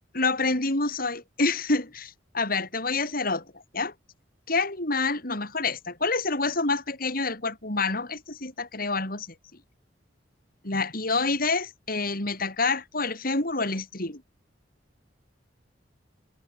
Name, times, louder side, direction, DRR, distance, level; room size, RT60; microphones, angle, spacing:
voice 1, 0.1-3.5 3.7-3.9 4.5-9.3 10.6-14.2, left 3 dB, 50° left, 6.4 m, -27 dB
head